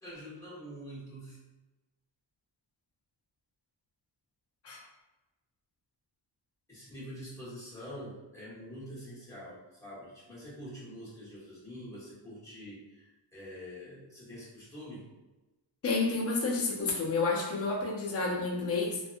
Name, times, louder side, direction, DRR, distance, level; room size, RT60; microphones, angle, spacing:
voice 1, 0.0-1.4 6.7-15.1, equal, 5° left, -10 dB, 1.4 m, -45 dB
voice 2, 15.8-19.0, left 3 dB, 35° left, -4 dB, 0.6 m, -30 dB
2.6 x 2.4 x 2.5 m, 1.1 s
wide cardioid pair, 110°, 44 cm